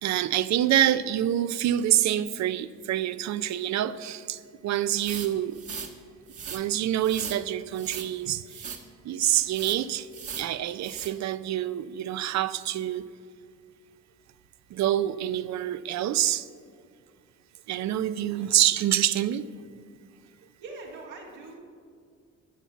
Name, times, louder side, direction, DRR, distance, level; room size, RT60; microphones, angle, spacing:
voice 1, 0.0-5.6 6.5-8.7 9.0-10.1 10.4-13.0 14.7-16.5 17.7-19.4, right 12 dB, 65° right, 15 dB, 0.5 m, -26 dB
sound 1, 4.9-5.9 6.3-6.6 7.0-7.4 7.7-8.1 8.5-8.8 9.2-9.8 10.1-10.5 10.8-11.1, right 6 dB, 50° right, 1.3 m, -38 dB
voice 2, 20.2-21.6, right 3 dB, 90° right, -2 dB, 2.4 m, -43 dB
12.0 x 7.0 x 7.1 m, 2.2 s
cardioid pair, 90°, 30 cm